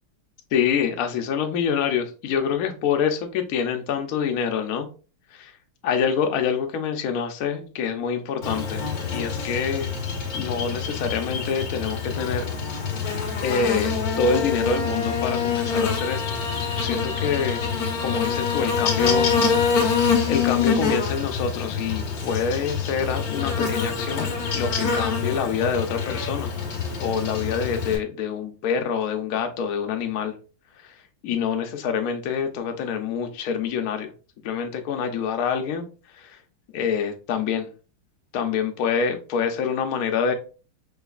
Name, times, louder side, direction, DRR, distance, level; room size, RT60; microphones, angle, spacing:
voice 1, 0.5-4.9 5.3-5.5 5.8-8.8 9.1-9.9 10.3-12.4 12.9-13.1 13.4-16.4 16.7-17.6 18.0-19.3 20.3-24.3 24.5-26.5 27.0-30.3 31.2-34.1 34.4-35.9 36.2-36.4 36.7-37.7 38.3-40.3, left 6 dB, 85° left, 0.7 m, -26 dB
Buzz, 8.4-28.0, left 5 dB, 55° left, 1.1 m, -25 dB
5.0 x 3.1 x 2.3 m
omnidirectional pair, 2.3 m